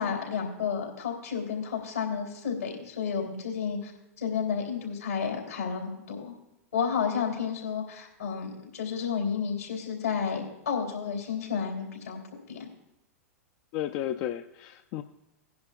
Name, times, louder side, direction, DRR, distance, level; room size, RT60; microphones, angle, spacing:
voice 1, 0.0-3.9 4.2-6.3 6.7-12.2 12.5-12.7, left 6 dB, 80° left, 0 dB, 3.2 m, -31 dB
voice 2, 13.7-15.0, left 12 dB, 45° left, 8 dB, 0.4 m, -33 dB
17.0 x 10.5 x 2.4 m, 0.91 s
hypercardioid pair, 100°, 8 cm